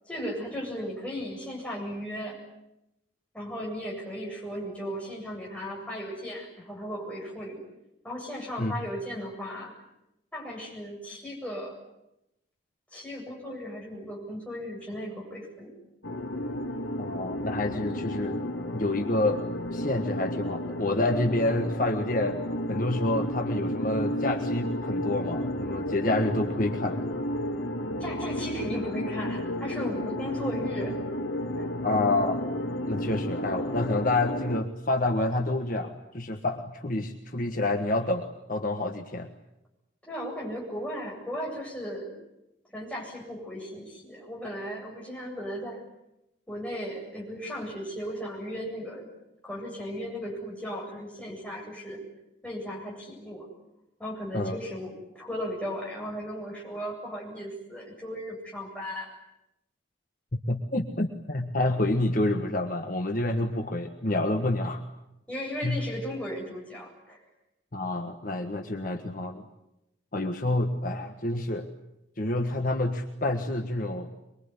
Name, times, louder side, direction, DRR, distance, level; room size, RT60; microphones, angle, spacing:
voice 1, 0.1-2.4 3.3-7.6 8.0-9.7 10.3-11.7 12.9-15.7 28.0-31.0 31.6-31.7 40.0-42.1 42.7-45.8 46.5-49.1 49.4-52.0 52.4-53.5 54.0-59.1 65.3-67.2, equal, 5° left, -2 dB, 8.0 m, -36 dB
sound 1, 16.0-34.6, left 1 dB, 80° left, 1.7 m, -32 dB
voice 2, 17.0-18.4 18.7-19.4 19.7-22.4 22.7-27.0 31.8-32.5 32.9-39.3 54.3-54.6 60.3-64.8 65.6-65.8 67.7-69.4 70.1-71.7 72.2-74.1, left 2 dB, 45° left, 4 dB, 1.5 m, -28 dB
23.5 x 23.5 x 9.8 m, 0.88 s
head